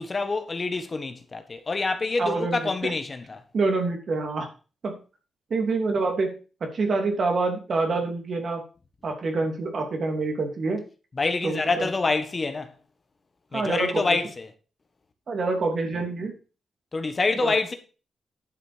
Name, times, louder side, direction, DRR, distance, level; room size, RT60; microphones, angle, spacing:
voice 1, 0.0-3.4 11.2-12.7 13.5-14.5 16.9-17.7, left 3 dB, 35° left, 1.4 m, -26 dB
voice 2, 2.2-2.9 3.5-4.5 4.8-5.0 5.5-8.6 9.0-10.8 11.4-11.9 13.5-14.2 15.3-16.3 17.4-17.5, right 3 dB, 55° right, 2.9 m, -26 dB
11.0 x 6.3 x 5.0 m
cardioid pair, 95°, 0 cm